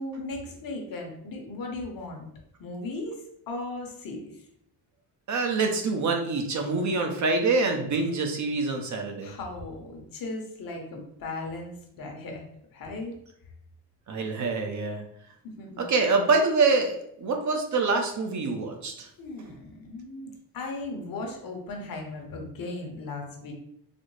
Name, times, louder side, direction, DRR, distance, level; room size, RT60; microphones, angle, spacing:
voice 1, 0.0-2.3 2.6-4.5 9.2-12.5 12.7-13.1 15.4-15.8 19.2-23.5, left 2 dB, 55° left, 2 dB, 1.0 m, -37 dB
voice 2, 5.3-9.3 14.1-15.0 15.8-19.1, right 3 dB, 45° right, 3 dB, 0.6 m, -25 dB
4.1 x 2.0 x 3.1 m, 0.71 s
cardioid pair, 115°, 41 cm